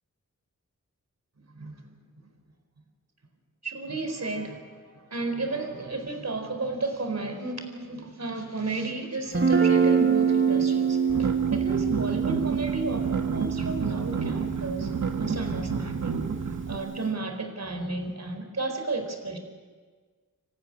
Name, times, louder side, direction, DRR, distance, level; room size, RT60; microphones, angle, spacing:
voice 1, 3.6-14.9 15.2-16.2 16.7-19.4, right 3 dB, 55° right, 5 dB, 4.4 m, -33 dB
Guitar, 9.3-17.0, right 6 dB, 40° right, 2.2 m, -26 dB
sound 1, 11.1-16.8, right 5 dB, 75° right, 1.6 m, -31 dB
27.0 x 14.5 x 9.9 m, 1.5 s
cardioid pair, 45°, 31 cm